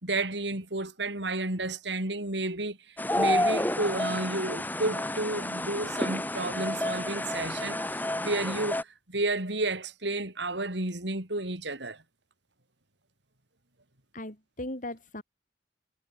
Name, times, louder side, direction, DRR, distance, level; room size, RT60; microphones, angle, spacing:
voice 1, 0.0-2.8 3.1-7.8 8.2-8.8 9.1-12.0, right 2 dB, 70° right, 5.0 m, -31 dB
sound 1, 3.0-8.8, left 1 dB, 10° left, 7.4 m, -30 dB
voice 2, 14.1-15.2, left 1 dB, 45° left, 5.8 m, -38 dB
head